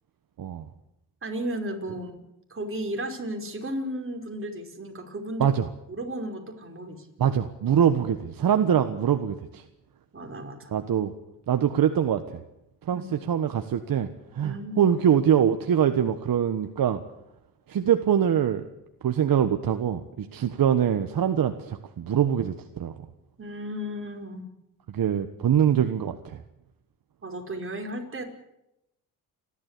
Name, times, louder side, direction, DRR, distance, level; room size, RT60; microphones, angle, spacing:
voice 1, 1.2-2.2 2.5-5.5 5.9-7.1 10.1-10.7 12.9-13.1 14.4-14.9 23.4-24.5 27.2-28.2, right 1 dB, 30° right, 2 dB, 5.3 m, -34 dB
voice 2, 7.2-9.6 10.7-11.1 11.5-12.4 12.8-14.1 14.3-17.0 17.7-18.7 19.0-23.0 24.9-26.4, right 9 dB, 55° right, 8 dB, 1.4 m, -24 dB
30.0 x 12.5 x 8.4 m, 0.88 s
cardioid pair, 80°, 40 cm